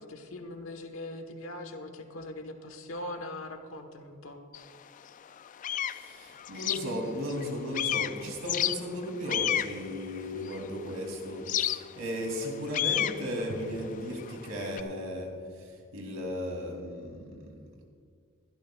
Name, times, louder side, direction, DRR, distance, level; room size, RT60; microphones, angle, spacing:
voice 1, 0.0-4.4, left 1 dB, 75° left, 5 dB, 1.2 m, -41 dB
sound 1, 4.5-4.6 5.2-7.5 7.7-10.9 11.5-14.8, left 11 dB, 40° left, 0.3 m, -32 dB
voice 2, 5.9-17.6, equal, 85° right, 1 dB, 2.9 m, -36 dB
22.5 x 12.5 x 2.4 m, 2.1 s
head